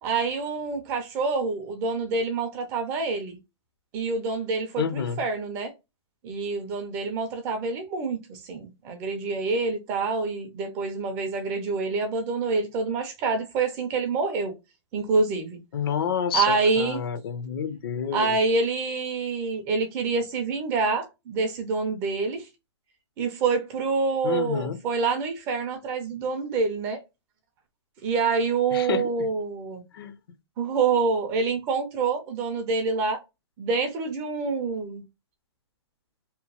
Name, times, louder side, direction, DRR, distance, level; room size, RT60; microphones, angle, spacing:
voice 1, 0.0-3.4 3.9-5.7 6.2-14.5 14.9-15.6 16.3-17.0 18.1-22.5 23.2-27.0 28.0-29.8 30.6-33.2 33.6-35.0, right 4 dB, 15° right, 0.4 m, -27 dB
voice 2, 4.8-5.2 15.7-18.4 24.2-24.8 28.7-29.3 29.9-30.1, left 7 dB, 55° left, 0.5 m, -29 dB
2.9 x 2.0 x 2.8 m
hypercardioid pair, 160°, 15 cm